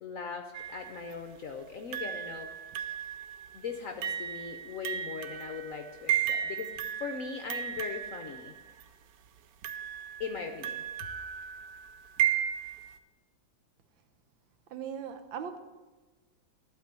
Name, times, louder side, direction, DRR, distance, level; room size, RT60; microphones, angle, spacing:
voice 1, 0.0-2.6 3.5-6.7 7.0-8.6 10.2-10.8, left 5 dB, 70° left, 5 dB, 0.8 m, -39 dB
sound 1, 0.5-1.1 1.9-8.8 9.6-13.0, right 10 dB, 75° right, 0.9 m, -35 dB
voice 2, 14.7-15.6, right 7 dB, 90° right, 8 dB, 1.5 m, -38 dB
12.0 x 4.4 x 6.7 m, 1.2 s
omnidirectional pair, 2.1 m